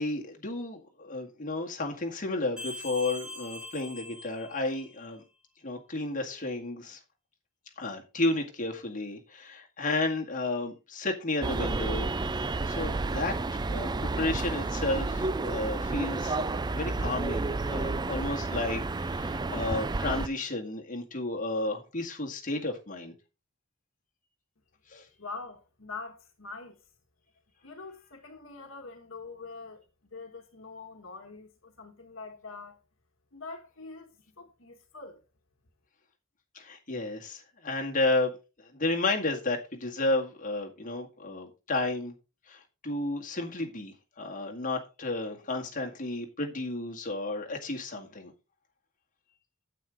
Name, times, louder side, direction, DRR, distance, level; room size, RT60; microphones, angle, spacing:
voice 1, 0.0-5.2 5.6-7.0 7.8-12.1 12.7-16.4 16.7-23.1 24.9-25.1 36.5-42.1 42.5-48.3, left 2 dB, 40° left, 1.9 m, -32 dB
sound 1, 2.6-5.1, left 2 dB, 5° right, 3.3 m, -42 dB
sound 2, 11.4-20.3, right 3 dB, 20° right, 0.4 m, -31 dB
voice 2, 25.2-26.8 27.6-29.8 30.1-32.8 33.3-35.2, left 4 dB, 70° left, 1.4 m, -44 dB
9.1 x 8.2 x 3.7 m
head